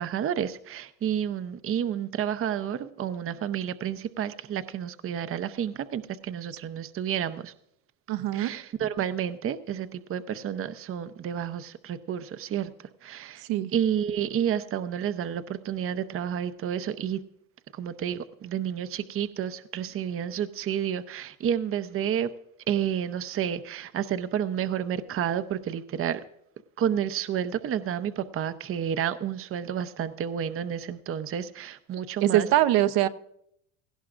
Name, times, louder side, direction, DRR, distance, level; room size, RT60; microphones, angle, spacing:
voice 1, 0.0-7.5 8.3-12.7 13.0-13.4 13.7-17.2 17.7-22.3 22.7-26.2 26.8-32.5, right 9 dB, 35° right, 11 dB, 0.8 m, -30 dB
voice 2, 8.1-8.5 13.5-13.7 32.2-33.1, right 13 dB, 60° right, 10 dB, 0.9 m, -22 dB
17.5 x 15.5 x 2.5 m, 0.73 s
supercardioid pair, 100°, 40 cm